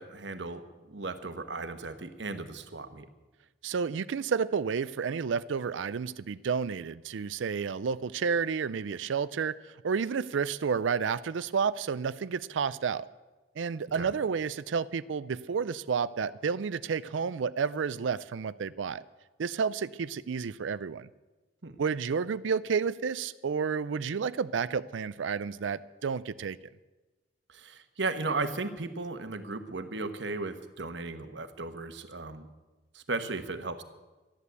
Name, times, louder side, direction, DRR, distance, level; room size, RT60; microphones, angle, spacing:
voice 1, 0.0-3.1 13.9-14.1 21.6-21.8 27.5-32.5 32.9-33.8, right 3 dB, 70° right, 9 dB, 1.2 m, -36 dB
voice 2, 3.6-9.5 9.8-13.1 13.6-19.0 19.4-21.1 21.8-26.6, right 6 dB, 85° right, 16 dB, 0.4 m, -31 dB
13.0 x 11.0 x 8.1 m, 1.2 s
head